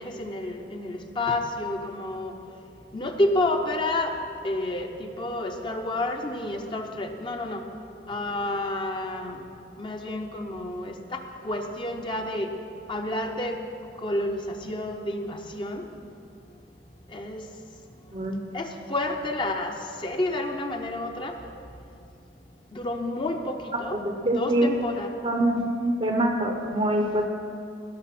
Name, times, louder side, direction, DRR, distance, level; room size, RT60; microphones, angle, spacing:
voice 1, 0.0-2.3 2.9-4.1 4.4-4.9 5.2-7.6 8.1-9.4 9.8-12.5 12.9-13.6 14.0-15.8 17.1-17.4 18.5-19.7 20.0-21.3 22.7-24.0 24.2-25.1, left 1 dB, 25° left, 3 dB, 0.8 m, -29 dB
voice 2, 24.0-24.7 25.2-27.3, right 1 dB, 35° right, 3 dB, 0.8 m, -24 dB
19.0 x 6.5 x 6.0 m, 2.5 s
head